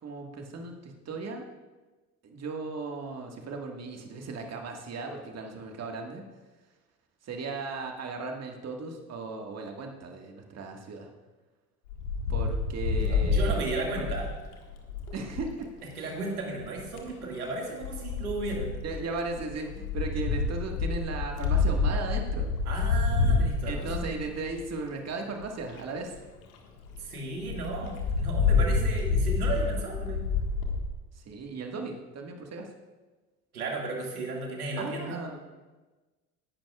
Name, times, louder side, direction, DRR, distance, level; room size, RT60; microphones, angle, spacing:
voice 1, 0.0-1.5 2.2-6.2 7.2-11.1 12.3-13.6 13.9-14.1 15.1-15.7 18.8-22.5 23.7-26.1 31.3-32.7 34.8-35.4, right 3 dB, 35° right, 2 dB, 1.8 m, -36 dB
Wind, 11.9-15.5 16.6-17.1 17.8-24.8 25.4-25.5 25.7-25.8 26.1-26.2 26.5-26.6 26.9-27.0 27.4-30.8, left 4 dB, 70° left, 1.8 m, -28 dB
voice 2, 13.0-14.3 16.0-18.7 22.6-24.1 27.0-30.2 33.5-35.2, right 3 dB, 85° right, 0 dB, 2.2 m, -34 dB
18.0 x 11.0 x 2.5 m, 1.2 s
figure-of-eight pair, 60°, 44 cm